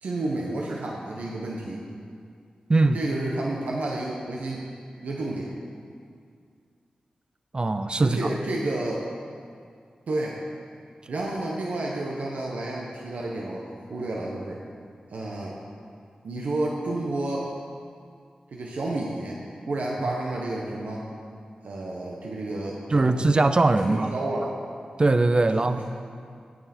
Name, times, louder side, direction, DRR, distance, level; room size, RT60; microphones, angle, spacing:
voice 1, 0.0-1.8 2.9-4.7 5.0-5.5 8.0-9.0 10.1-10.4 11.1-13.6 13.9-14.6 15.1-15.5 16.2-17.4 18.5-19.4 19.7-21.1 21.6-23.3 23.9-24.5 25.7-25.8, right 2 dB, 80° right, -3 dB, 1.2 m, -30 dB
voice 2, 7.5-8.3 22.9-24.1 25.0-25.8, right 2 dB, 40° right, 9 dB, 0.6 m, -21 dB
12.5 x 9.0 x 4.5 m, 2.3 s
cardioid pair, 50°, 2 cm